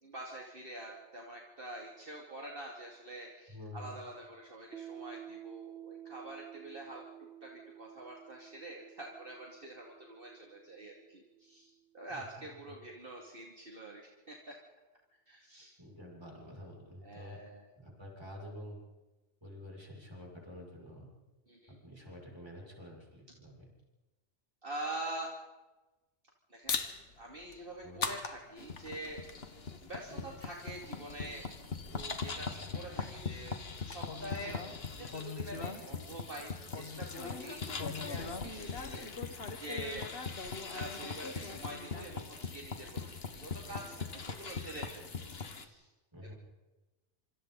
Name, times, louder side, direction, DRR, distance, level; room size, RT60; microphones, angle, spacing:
voice 1, 0.0-14.5 15.3-15.7 17.0-17.7 21.5-21.8 24.6-25.3 26.5-26.8 27.2-29.2 29.8-31.5 31.8-32.5 32.7-37.7 38.1-43.1 43.3-45.9, right 1 dB, 50° right, -2 dB, 2.9 m, -46 dB
voice 2, 3.5-3.9 12.1-12.7 15.8-17.4 17.8-18.8 19.4-21.1 21.7-23.7 27.8-28.1 30.1-30.3 32.5-32.8 37.7-38.2 46.1-46.3, left 1 dB, 20° right, -2 dB, 6.6 m, -49 dB
Piano, 4.7-12.0, right 11 dB, 70° right, 1.1 m, -51 dB
sound 1, 26.6-35.0, left 5 dB, 80° left, 1.8 m, -43 dB
sound 2, 28.6-45.7, left 4 dB, 55° left, 1.7 m, -41 dB
27.0 x 26.0 x 4.1 m, 1.1 s
omnidirectional pair, 1.2 m